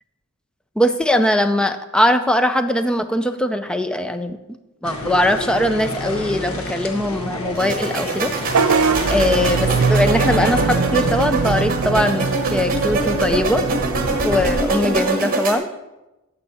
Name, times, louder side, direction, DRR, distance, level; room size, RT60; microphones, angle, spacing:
voice 1, 0.8-4.4 4.8-8.3 9.1-13.6 14.2-15.7, left 1 dB, 5° left, 9 dB, 0.4 m, -20 dB
sound 1, 4.8-11.0, left 1 dB, 70° left, 1.2 m, -29 dB
sound 2, 7.6-15.6, right 3 dB, 40° right, 1.2 m, -23 dB
Vehicle horn car horn honking / Bus, 8.5-14.6, right 4 dB, 80° right, 0.5 m, -22 dB
15.0 x 5.5 x 4.2 m, 1.0 s
head